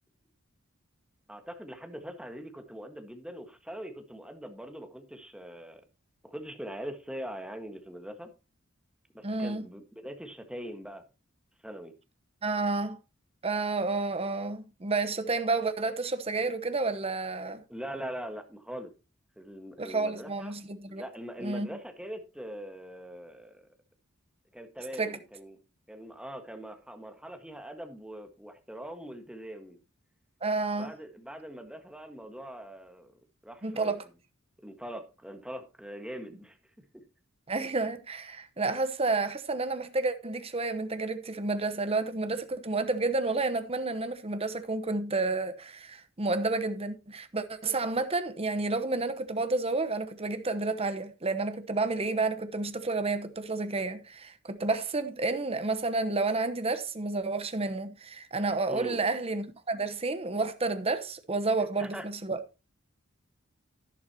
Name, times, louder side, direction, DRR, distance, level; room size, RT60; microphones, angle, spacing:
voice 1, 1.3-5.8 6.2-8.3 9.1-11.0 11.6-11.9 17.7-18.9 19.4-20.5 20.9-23.7 24.5-25.6 25.9-29.8 30.7-33.1 33.4-33.9 34.6-36.6 36.9-37.0 58.7-59.0 61.8-62.1, equal, 5° right, 1.6 m, -42 dB
voice 2, 9.2-9.6 12.4-13.0 13.4-17.6 19.8-21.0 21.4-21.7 25.0-25.2 30.4-30.9 33.6-34.0 37.5-62.4, right 3 dB, 30° right, 1.0 m, -30 dB
11.5 x 11.0 x 2.9 m
head